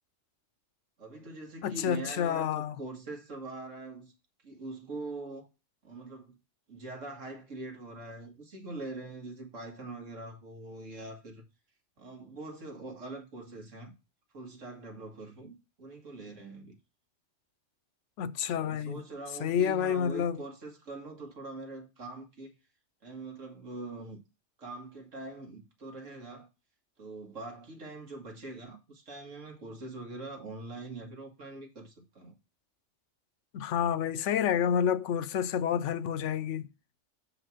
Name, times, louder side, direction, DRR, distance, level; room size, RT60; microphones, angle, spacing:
voice 1, 1.0-4.1 4.4-5.5 5.8-6.4 6.7-11.5 12.0-13.9 14.3-16.8 18.6-22.5 23.0-24.2 24.6-26.5 27.0-32.4, right 2 dB, 90° right, 2.2 m, -43 dB
voice 2, 1.6-2.7 18.2-19.0 19.4-20.4 33.5-36.7, left 8 dB, 75° left, 0.9 m, -29 dB
6.5 x 4.9 x 6.1 m
omnidirectional pair, 1.3 m